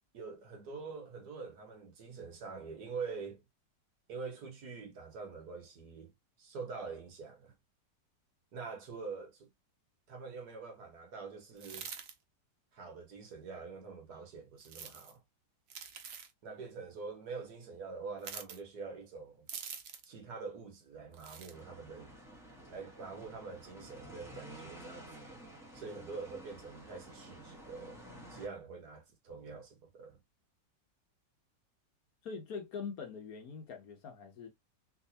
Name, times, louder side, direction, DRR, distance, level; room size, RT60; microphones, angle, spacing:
voice 1, 0.1-3.4 4.1-6.1 6.4-7.5 8.5-9.5 10.1-11.9 12.7-15.2 16.4-19.5 20.0-22.1 22.7-25.4 25.7-28.0 28.3-30.2, right 4 dB, 60° right, 1.5 m, -45 dB
sound 1, 11.6-12.1 14.6-15.1 15.7-16.3 18.2-18.6 19.5-20.1 21.1-21.5, right 7 dB, 80° right, 0.5 m, -45 dB
sound 2, 21.5-28.5, right 1 dB, ahead, 0.8 m, -51 dB
voice 2, 32.2-34.5, left 5 dB, 60° left, 1.2 m, -43 dB
3.5 x 3.0 x 2.7 m
omnidirectional pair, 1.9 m